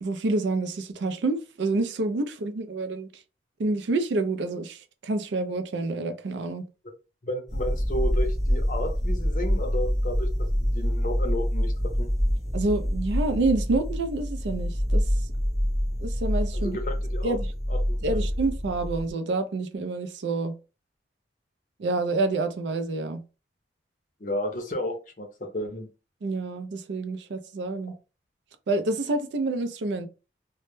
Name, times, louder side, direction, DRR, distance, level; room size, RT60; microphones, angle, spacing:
voice 1, 0.0-3.1 3.6-6.6 12.5-15.1 16.0-16.8 17.2-17.5 18.0-20.5 21.8-23.2 26.2-27.9 28.7-30.1, right 2 dB, 75° right, 0.4 m, -28 dB
voice 2, 7.2-10.3 10.6-11.7 12.0-12.1 16.5-17.4 17.7-18.2 24.2-25.9, left 1 dB, 45° left, 0.6 m, -32 dB
sound 1, 7.5-19.1, equal, ahead, 0.6 m, -26 dB
2.1 x 2.1 x 3.0 m
head